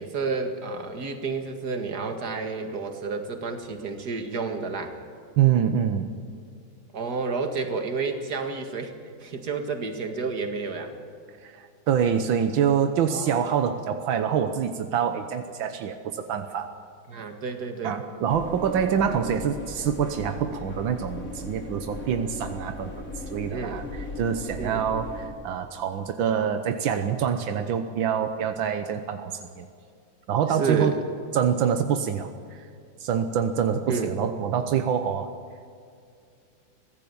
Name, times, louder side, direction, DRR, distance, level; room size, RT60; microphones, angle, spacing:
voice 1, 0.0-4.9 6.9-10.9 13.1-13.4 17.1-18.0 23.5-23.9 24.6-24.8 30.5-31.0 33.9-34.2, right 4 dB, 55° right, 5 dB, 2.4 m, -30 dB
voice 2, 5.4-6.1 11.4-16.7 17.8-29.7 30.3-31.0 31.3-32.7 33.0-35.3, right 8 dB, 85° right, 8 dB, 1.7 m, -26 dB
sound 1, 18.3-25.3, left 2 dB, 45° left, 3.3 m, -38 dB
24.0 x 16.5 x 7.0 m, 2.4 s
omnidirectional pair, 2.1 m